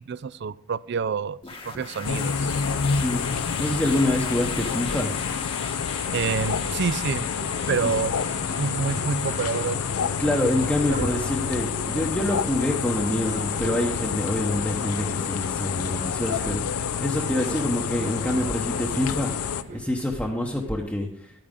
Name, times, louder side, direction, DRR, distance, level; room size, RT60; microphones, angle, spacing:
voice 1, 0.0-1.4 1.7-2.6 6.1-7.3 7.7-8.1 8.5-9.8 10.6-11.2, right 5 dB, 50° right, 19 dB, 0.3 m, -28 dB
sound 1, 1.4-20.7, left 4 dB, 25° left, 1.0 m, -41 dB
sound 2, 2.0-19.6, left 6 dB, 85° left, 0.5 m, -28 dB
voice 2, 2.9-3.2 3.6-5.1 7.8-7.9 10.2-19.3 19.7-21.3, left 1 dB, 5° left, -1 dB, 0.9 m, -26 dB
sound 3, 6.0-19.8, right 2 dB, 35° right, 0.8 m, -40 dB
11.5 x 8.9 x 3.7 m, 0.68 s
head